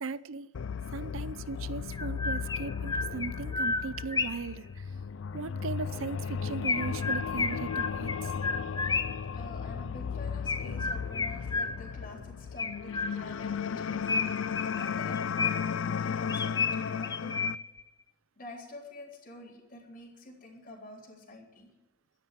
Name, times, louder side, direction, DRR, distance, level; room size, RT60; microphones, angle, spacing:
voice 1, 0.0-0.5 0.9-4.6 5.3-8.1, right 4 dB, 85° right, 17 dB, 0.6 m, -38 dB
sound 1, 0.5-17.5, left 6 dB, 65° left, 0.4 m, -35 dB
Chirp tweet, 1.9-4.5 6.6-9.3 10.5-12.0 12.6-13.5 14.1-15.8 16.3-17.8, left 4 dB, 20° left, 0.7 m, -32 dB
voice 2, 9.3-14.1 14.4-17.4 18.4-21.7, left 2 dB, 45° left, 0 dB, 3.8 m, -47 dB
12.5 x 10.5 x 7.4 m, 1.0 s
head